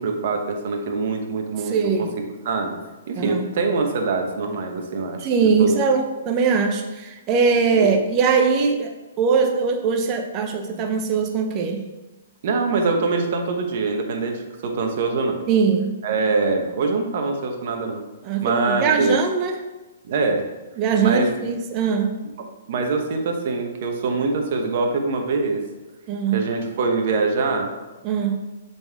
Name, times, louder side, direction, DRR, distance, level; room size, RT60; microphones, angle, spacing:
voice 1, 0.0-2.1 2.4-2.8 3.1-5.8 7.7-7.9 12.4-15.4 16.0-18.0 18.4-19.2 20.1-20.4 21.0-21.3 22.4-25.6 26.3-27.7, right 3 dB, 55° right, 3 dB, 1.0 m, -24 dB
voice 2, 1.6-2.1 3.2-3.5 5.2-11.9 15.5-16.0 18.2-19.6 20.8-22.2 26.1-26.5 28.0-28.4, right 5 dB, 35° right, 5 dB, 0.7 m, -21 dB
7.0 x 4.2 x 3.5 m, 1.1 s
hypercardioid pair, 130°, 0 cm